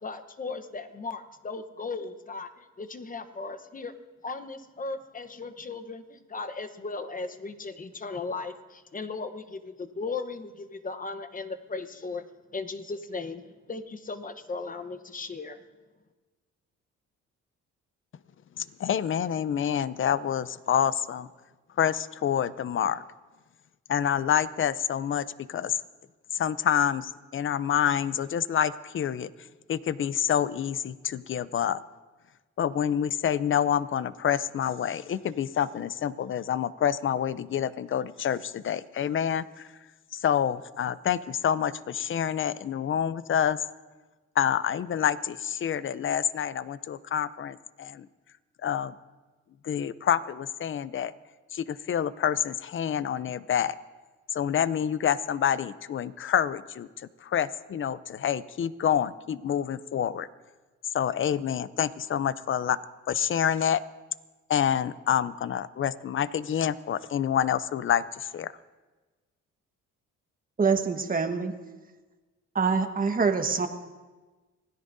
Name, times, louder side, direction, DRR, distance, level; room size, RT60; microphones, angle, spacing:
voice 1, 0.0-3.9 4.2-12.3 12.5-15.6, left 4 dB, 25° left, 9 dB, 1.0 m, -37 dB
voice 2, 18.6-21.3 21.8-23.0 23.9-25.8 26.3-29.3 29.7-31.8 32.6-39.7 40.1-43.6 44.4-48.1 48.6-48.9 49.6-51.1 51.5-53.8 54.3-60.3 60.9-62.8 63.1-63.8 64.5-68.5, left 9 dB, 40° left, 16 dB, 0.6 m, -27 dB
voice 3, 70.6-71.5 72.5-73.7, right 5 dB, 30° right, 6 dB, 1.3 m, -25 dB
25.5 x 17.0 x 2.7 m, 1.3 s
cardioid pair, 90°, 30 cm